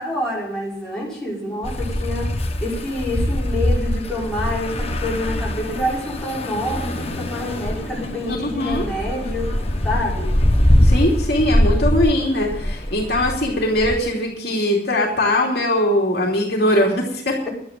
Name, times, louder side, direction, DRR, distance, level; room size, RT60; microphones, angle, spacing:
voice 1, 0.0-2.3 2.6-10.3, left 1 dB, 5° left, -7 dB, 5.7 m, -27 dB
sound 1, 1.6-14.0, left 1 dB, 35° left, 1.3 m, -22 dB
voice 2, 8.3-8.8 10.8-17.5, left 1 dB, 55° left, -1 dB, 3.0 m, -21 dB
12.0 x 9.7 x 7.5 m, 0.67 s
head